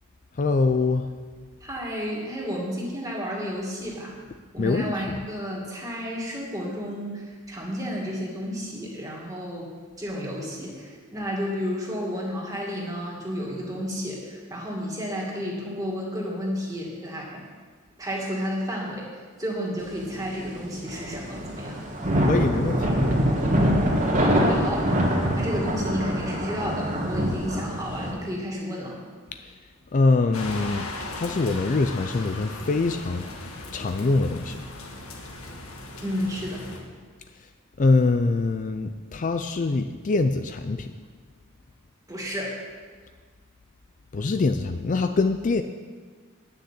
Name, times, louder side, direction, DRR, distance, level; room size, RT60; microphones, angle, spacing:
voice 1, 0.4-1.1 4.6-5.2 22.2-23.0 29.9-30.9 31.1-33.3 33.7-34.6 37.8-40.9 44.1-45.6, left 3 dB, 40° left, 8 dB, 0.4 m, -24 dB
voice 2, 1.6-4.2 4.5-9.7 10.0-17.4 18.0-19.1 19.4-21.8 24.4-28.9 36.0-36.6 42.1-42.6, equal, 15° right, -3 dB, 2.4 m, -32 dB
sound 1, 19.9-20.4 20.7-28.1, equal, 40° right, 1.8 m, -24 dB
sound 2, 30.3-36.8, left 2 dB, 90° left, 1.6 m, -38 dB
10.0 x 6.5 x 8.3 m, 1.5 s
head